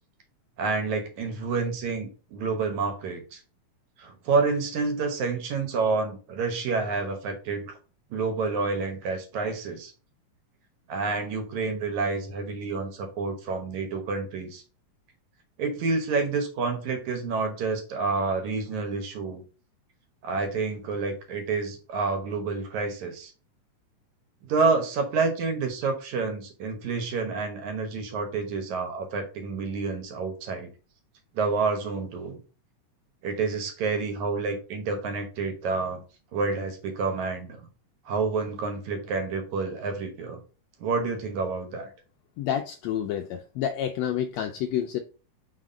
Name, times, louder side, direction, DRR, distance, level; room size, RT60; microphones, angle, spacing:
voice 1, 0.6-3.4 4.0-7.7 8.1-9.9 10.9-14.6 15.6-19.4 20.2-23.3 24.4-30.7 31.3-32.4 33.2-36.0 36.3-37.7 38.1-40.4 40.8-41.9, right 4 dB, 70° right, 2.3 m, -28 dB
voice 2, 42.4-45.0, left 10 dB, 85° left, 1.5 m, -29 dB
4.8 x 4.1 x 4.9 m
omnidirectional pair, 3.6 m